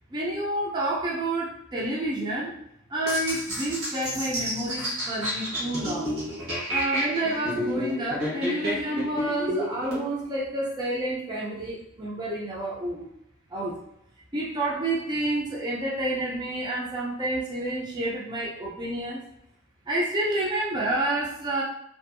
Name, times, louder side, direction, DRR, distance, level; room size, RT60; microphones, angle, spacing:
voice 1, 0.1-2.5 2.9-6.1 6.7-13.1 13.5-13.8 14.3-19.2 19.9-21.6, right 1 dB, 20° right, -4 dB, 0.4 m, -29 dB
sound 1, 3.1-10.0, equal, 70° right, 1.0 m, -30 dB
2.6 x 2.4 x 2.3 m, 0.77 s
head